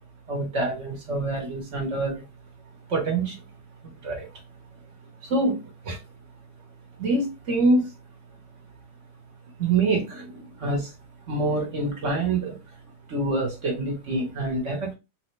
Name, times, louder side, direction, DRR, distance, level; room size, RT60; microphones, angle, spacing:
voice 1, 0.3-2.2 2.9-3.4 3.8-4.3 5.2-5.6 5.8-6.0 7.0-7.9 9.6-10.9 11.3-12.6 13.1-14.9, right 2 dB, 45° right, 1 dB, 1.5 m, -26 dB
4.0 x 2.8 x 3.2 m, 0.25 s
omnidirectional pair, 1.8 m